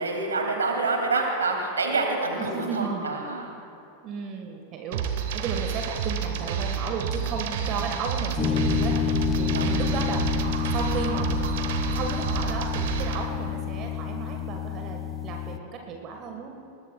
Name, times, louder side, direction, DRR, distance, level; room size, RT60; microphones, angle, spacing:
voice 1, 0.0-3.5 9.5-9.7, right 3 dB, 70° right, 2 dB, 2.3 m, -27 dB
voice 2, 2.4-3.1 4.0-8.9 9.4-10.4 10.7-11.5 11.9-16.6, right 5 dB, 35° right, 3 dB, 1.4 m, -34 dB
sound 1, 4.9-13.3, right 7 dB, 55° right, 1.1 m, -29 dB
sound 2, 8.4-15.6, left 8 dB, 20° left, 0.6 m, -28 dB
21.0 x 20.0 x 2.3 m, 2.6 s
figure-of-eight pair, 90°, 0 cm